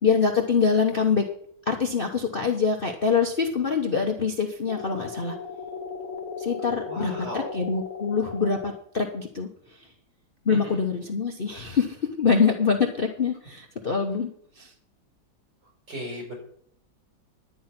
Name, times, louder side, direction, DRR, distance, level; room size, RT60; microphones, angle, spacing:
voice 1, 0.0-1.3 1.7-5.4 6.4-9.5 10.4-14.3 14.6-14.7, left 5 dB, 35° left, 3 dB, 1.0 m, -24 dB
sound 1, 4.7-8.7, left 5 dB, 60° left, 1.7 m, -36 dB
voice 2, 6.9-7.5 10.5-10.6 15.9-16.3, left 1 dB, 60° right, 0 dB, 6.2 m, -35 dB
11.0 x 9.3 x 5.9 m, 0.63 s
omnidirectional pair, 2.2 m